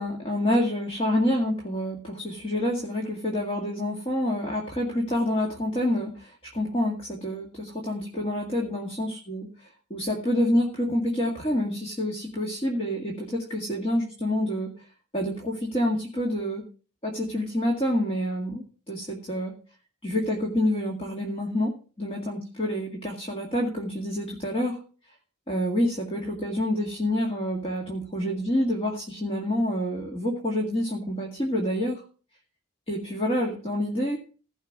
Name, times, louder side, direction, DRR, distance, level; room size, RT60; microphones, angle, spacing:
voice 1, 0.0-9.5 9.9-14.7 15.1-16.6 17.0-19.6 20.0-24.8 25.5-32.0 32.9-34.2, left 1 dB, 30° left, 0 dB, 2.1 m, -27 dB
15.5 x 5.7 x 6.1 m, 0.38 s
head